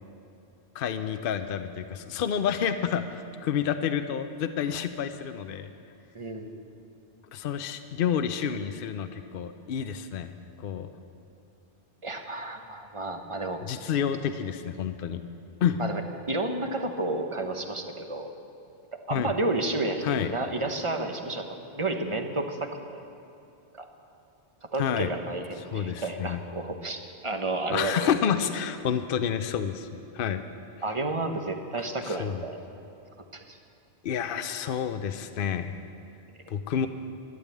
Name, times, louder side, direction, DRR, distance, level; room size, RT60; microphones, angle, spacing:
voice 1, 0.7-5.7 7.3-10.3 10.6-10.9 13.6-15.2 15.6-15.8 19.1-19.3 20.0-20.3 24.8-25.1 25.7-26.4 27.7-29.9 30.1-30.4 31.8-32.4 34.0-35.8 36.5-36.9, left 8 dB, 65° left, 9 dB, 0.8 m, -29 dB
voice 2, 6.1-6.5 12.0-13.6 15.8-16.0 16.3-18.3 19.1-21.4 21.7-23.0 23.7-23.9 24.7-28.2 30.8-32.6 33.3-33.6, right 2 dB, 30° right, 5 dB, 1.0 m, -31 dB
12.0 x 11.0 x 8.4 m, 2.6 s
omnidirectional pair, 1.0 m